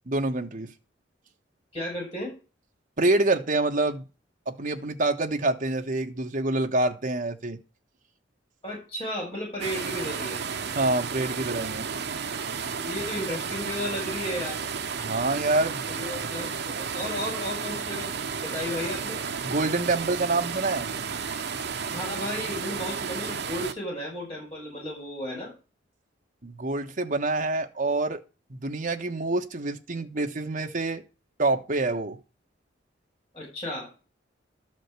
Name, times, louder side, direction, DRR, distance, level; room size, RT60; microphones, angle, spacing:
voice 1, 0.1-0.7 3.0-4.0 4.5-7.6 10.7-11.9 15.0-15.8 19.4-20.9 26.4-28.2 28.5-31.0 31.4-32.2, right 2 dB, 45° right, 1.3 m, -26 dB
voice 2, 1.7-2.3 8.6-10.4 12.8-14.7 15.9-19.2 21.8-25.5 33.3-33.9, left 1 dB, 25° left, 6.9 m, -34 dB
sound 1, 9.6-23.7, right 6 dB, 65° right, 1.0 m, -32 dB
12.5 x 5.2 x 8.2 m
head